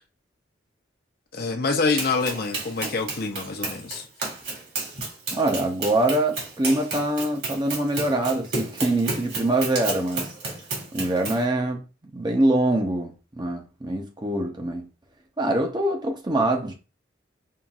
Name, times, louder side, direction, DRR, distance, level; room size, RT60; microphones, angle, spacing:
voice 1, 1.3-4.0, left 4 dB, 55° left, 0.7 m, -26 dB
Run, 2.0-11.5, right 3 dB, 55° right, 1.8 m, -32 dB
voice 2, 5.3-10.3 10.9-11.8 12.1-14.9 15.4-16.7, right 1 dB, 25° right, 0.7 m, -24 dB
5.6 x 2.5 x 2.4 m
head